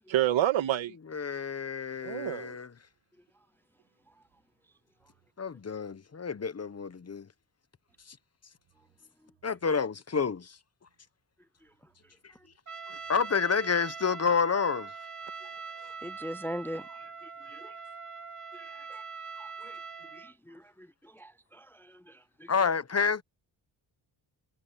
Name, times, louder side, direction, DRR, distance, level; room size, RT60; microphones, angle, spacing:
voice 1, 0.1-0.9 2.0-2.6, right 12 dB, 85° right, 2.4 m, -27 dB
voice 2, 1.1-2.7 5.4-7.3 9.4-10.5 12.9-14.9 22.5-23.2, left 5 dB, 35° left, 1.2 m, -29 dB
Trumpet, 12.7-20.3, right 5 dB, 40° right, 3.2 m, -43 dB
voice 3, 16.0-17.7 18.5-18.6 18.9-19.0 19.4-19.8 20.1-22.5, equal, 5° left, 0.5 m, -42 dB
cardioid pair, 65°, 45 cm